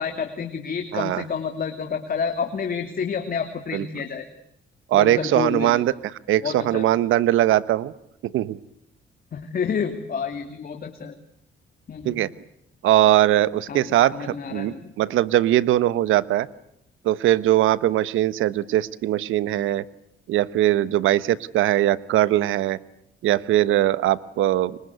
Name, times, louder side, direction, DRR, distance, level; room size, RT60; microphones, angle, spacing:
voice 1, 0.0-4.3 4.9-5.8 6.4-6.9 9.3-11.2 11.9-12.2 13.7-14.9, left 6 dB, 45° left, 7 dB, 2.6 m, -29 dB
voice 2, 0.9-1.2 3.7-3.8 4.9-5.9 6.3-7.9 8.2-8.6 12.0-12.3 12.8-16.5 17.0-19.8 20.3-22.8 23.2-24.8, right 13 dB, 85° right, 17 dB, 1.1 m, -21 dB
30.0 x 24.5 x 8.2 m, 0.74 s
cardioid pair, 90°, 20 cm